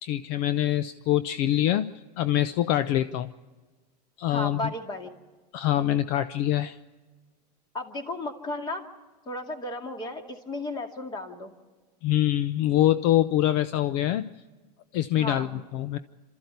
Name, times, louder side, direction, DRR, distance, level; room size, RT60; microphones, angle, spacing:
voice 1, 0.0-1.9 2.2-3.3 4.2-4.7 5.5-6.8 12.0-14.3 14.9-16.0, left 13 dB, 50° left, 13 dB, 0.7 m, -24 dB
voice 2, 4.3-5.1 7.7-8.9 9.3-11.5 15.2-15.5, left 1 dB, 20° left, 5 dB, 2.3 m, -34 dB
28.0 x 14.0 x 8.2 m, 1.3 s
supercardioid pair, 135°, 21 cm